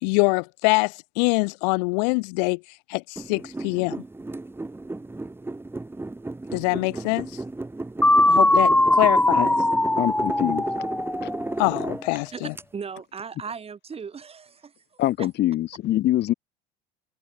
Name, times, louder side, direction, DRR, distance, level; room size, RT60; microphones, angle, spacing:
voice 1, 0.0-2.6 2.9-4.0 6.5-7.3 8.3-9.5 11.6-12.5, left 33 dB, 75° left, 1.7 m, -24 dB
sound 1, 3.2-12.6, right 2 dB, 10° right, 3.6 m, -34 dB
sound 2, 8.0-11.9, left 1 dB, 5° left, 4.3 m, -20 dB
voice 2, 10.0-10.7 11.2-11.3 15.0-16.3, left 14 dB, 55° left, 4.5 m, -24 dB
voice 3, 12.3-14.7 15.2-15.3, right 6 dB, 30° right, 7.3 m, -37 dB
supercardioid pair, 100°, 21 cm